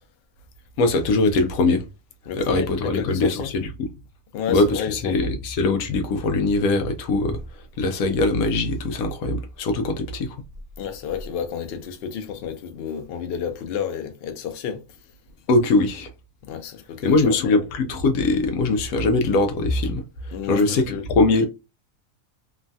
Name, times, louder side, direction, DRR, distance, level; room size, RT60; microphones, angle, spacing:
voice 1, 0.8-1.8 2.4-3.7 4.5-7.4 7.8-10.4 15.5-16.1 17.0-20.0 20.4-21.5, left 2 dB, 90° left, 1.0 m, -21 dB
voice 2, 2.3-3.5 4.3-5.2 10.8-14.8 16.4-17.6 20.3-21.0 21.4-21.5, left 7 dB, 60° left, 0.6 m, -31 dB
3.0 x 2.2 x 2.6 m
omnidirectional pair, 1.5 m